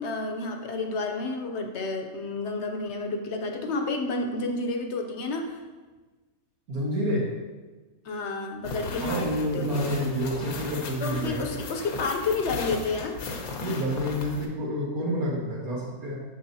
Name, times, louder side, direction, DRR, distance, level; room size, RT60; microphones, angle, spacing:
voice 1, 0.0-5.6 8.0-9.8 11.0-13.2, left 3 dB, 60° left, 4 dB, 0.9 m, -30 dB
voice 2, 6.7-7.3 9.0-11.5 13.6-16.2, equal, 85° right, -2 dB, 1.8 m, -28 dB
sound 1, 8.6-14.5, left 3 dB, 85° left, 1.3 m, -36 dB
6.8 x 6.3 x 2.7 m, 1.3 s
omnidirectional pair, 1.5 m